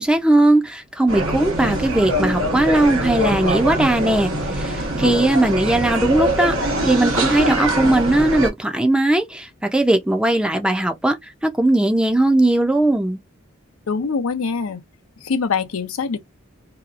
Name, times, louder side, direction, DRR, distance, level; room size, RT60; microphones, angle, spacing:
voice 1, 0.0-13.2, right 1 dB, 5° right, 0.4 m, -18 dB
sound 1, 1.1-8.5, right 1 dB, 85° right, 1.0 m, -23 dB
voice 2, 13.9-14.8 15.2-16.2, left 5 dB, 85° left, 0.6 m, -23 dB
2.8 x 2.4 x 2.4 m
head